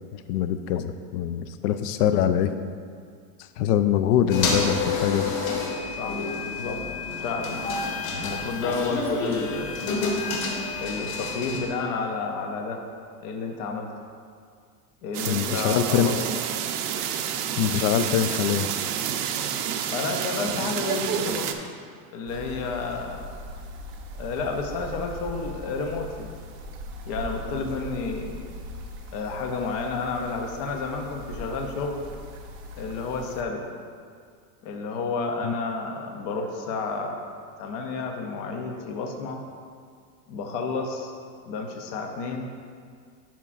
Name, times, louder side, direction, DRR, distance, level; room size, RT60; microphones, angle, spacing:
voice 1, 0.1-2.5 3.4-5.3 15.3-16.1 17.6-18.7 35.4-35.5, left 10 dB, 75° left, 10 dB, 0.5 m, -24 dB
sound 1, 4.3-11.7, left 3 dB, 60° left, 1.6 m, -28 dB
voice 2, 5.9-6.8 7.2-7.6 8.2-9.9 10.8-12.9 13.2-13.9 15.0-16.2 19.9-21.6 22.1-23.3 24.2-26.3 27.0-28.4 29.1-32.0 32.8-33.6 34.6-37.2 37.6-39.4 40.3-41.1 41.5-42.5, left 4 dB, 30° left, 3 dB, 0.3 m, -31 dB
sound 2, 15.1-21.5, right 9 dB, 75° right, 0.7 m, -29 dB
sound 3, 22.3-33.4, left 1 dB, 35° right, 0.5 m, -40 dB
11.0 x 5.8 x 2.4 m, 2.1 s
supercardioid pair, 165°, 47 cm